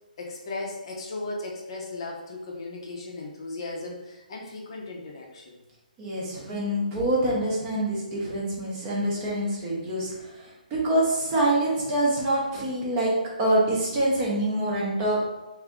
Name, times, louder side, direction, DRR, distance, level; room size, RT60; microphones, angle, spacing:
voice 1, 0.2-5.6, left 2 dB, 35° left, -1 dB, 0.6 m, -36 dB
voice 2, 6.0-15.2, right 1 dB, 15° right, -5 dB, 0.7 m, -26 dB
3.5 x 2.6 x 3.5 m, 1.1 s
hypercardioid pair, 170°, 5 cm